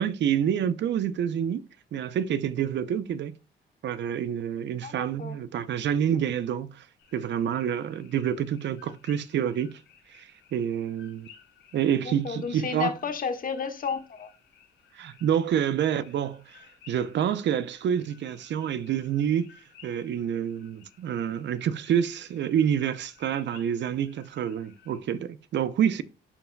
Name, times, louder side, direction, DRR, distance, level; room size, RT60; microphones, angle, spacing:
voice 1, 0.0-1.6 1.9-3.3 3.8-6.9 7.1-9.8 10.1-11.3 11.7-12.9 14.9-19.5 19.8-26.0, right 9 dB, 65° right, 0.6 m, -28 dB
voice 2, 4.8-5.4 12.0-14.3, left 6 dB, 45° left, 1.4 m, -32 dB
sound 1, 7.0-25.0, left 8 dB, 90° left, 3.4 m, -57 dB
11.0 x 4.6 x 2.2 m
cardioid pair, 90°, 20 cm